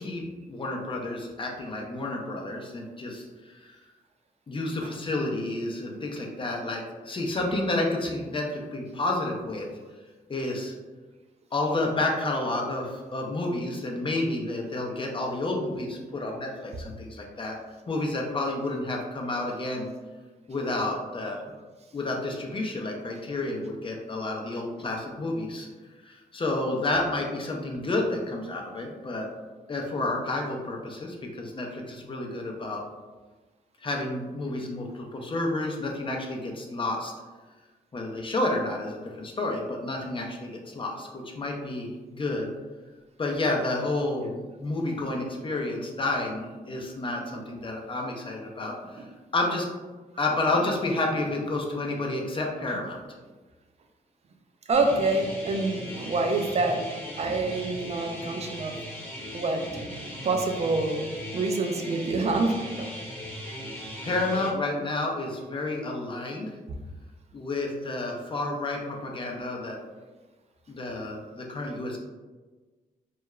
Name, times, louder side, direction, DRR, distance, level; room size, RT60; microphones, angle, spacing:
voice 1, 0.0-3.8 4.5-9.7 10.3-10.8 11.5-17.6 17.9-19.9 20.5-21.4 21.9-25.7 26.0-29.3 29.7-32.8 33.8-37.1 37.9-42.5 43.2-49.0 49.3-49.7 50.2-53.0 64.0-66.5 67.3-69.8 70.7-72.0, left 2 dB, 35° left, 0 dB, 0.5 m, -30 dB
sound 1, 54.7-64.5, equal, 10° left, 0.8 m, -38 dB
voice 2, 54.7-56.9 57.2-58.8 59.3-59.7 60.2-62.9, right 3 dB, 45° right, 4 dB, 0.4 m, -27 dB
2.3 x 2.2 x 2.9 m, 1.3 s
cardioid pair, 85°, 16 cm